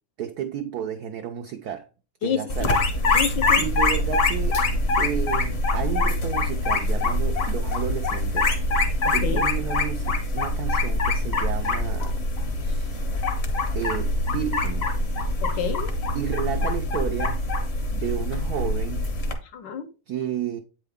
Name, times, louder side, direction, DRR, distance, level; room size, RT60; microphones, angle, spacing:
voice 1, 0.2-1.9 2.2-2.7 3.1-3.2 3.6-4.6 5.0-12.2 12.6-12.9 13.7-14.9 16.1-17.4 17.9-19.1 20.1-20.6, right 9 dB, 75° right, 0.8 m, -32 dB
voice 2, 2.2-2.7 3.1-3.6 9.0-9.4 15.4-15.9 19.4-19.9, left 7 dB, 70° left, 1.3 m, -29 dB
sound 1, 2.5-19.3, left 2 dB, 40° left, 1.0 m, -24 dB
8.3 x 4.6 x 3.5 m
omnidirectional pair, 2.2 m